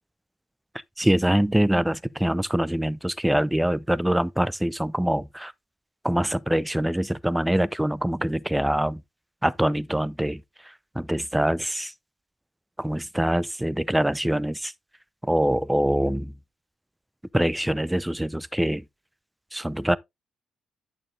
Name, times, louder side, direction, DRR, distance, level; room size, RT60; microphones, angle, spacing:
voice 1, 1.0-5.5 6.0-9.0 9.4-11.9 12.8-14.7 15.2-16.3 17.3-18.8 19.5-20.0, right 1 dB, 5° right, 0.5 m, -24 dB
10.5 x 6.3 x 2.6 m
figure-of-eight pair, 40°, 0 cm